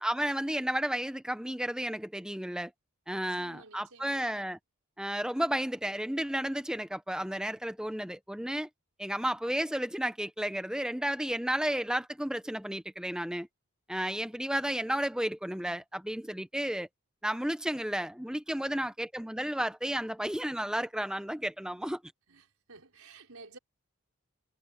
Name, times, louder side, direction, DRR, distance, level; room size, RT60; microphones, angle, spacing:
voice 1, 0.0-2.7 3.1-4.6 5.0-8.7 9.0-13.5 13.9-16.9 17.2-22.0, right 1 dB, 5° right, 0.8 m, -32 dB
voice 2, 3.1-4.3 14.2-14.6 18.5-18.9 22.3-23.6, right 3 dB, 90° right, 5.0 m, -54 dB
head